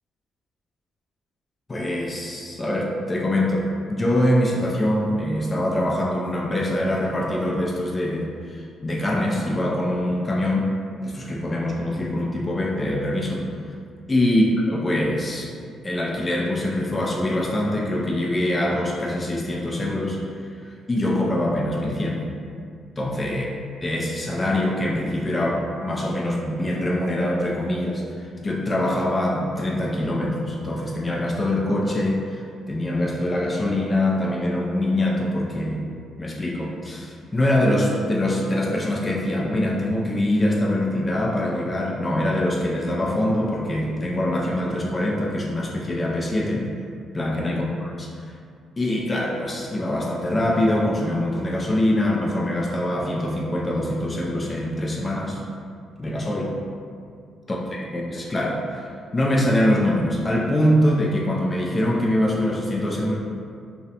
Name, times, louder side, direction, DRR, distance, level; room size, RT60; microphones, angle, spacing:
voice 1, 1.7-10.7 11.0-13.5 14.1-15.5 15.8-20.2 20.9-22.2 23.0-23.5 23.8-35.8 36.2-46.7 47.1-47.7 48.0-48.1 48.8-55.4 56.0-56.6 57.5-63.1, left 1 dB, 25° left, -2 dB, 0.3 m, -24 dB
2.3 x 2.0 x 2.8 m, 2.3 s
cardioid pair, 90°, 0 cm